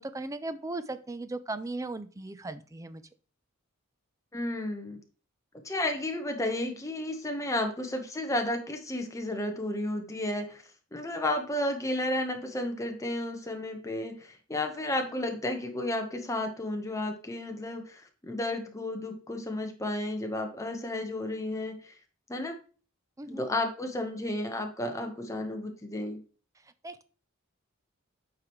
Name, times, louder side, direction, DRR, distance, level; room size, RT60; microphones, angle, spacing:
voice 1, 0.0-3.0 23.2-23.4 26.8-27.0, right 2 dB, 15° right, 13 dB, 0.4 m, -37 dB
voice 2, 4.3-5.0 5.6-10.6 10.9-21.9 22.3-22.6 23.3-26.2, left 1 dB, 15° left, 4 dB, 1.0 m, -32 dB
8.6 x 4.7 x 3.0 m, 0.38 s
head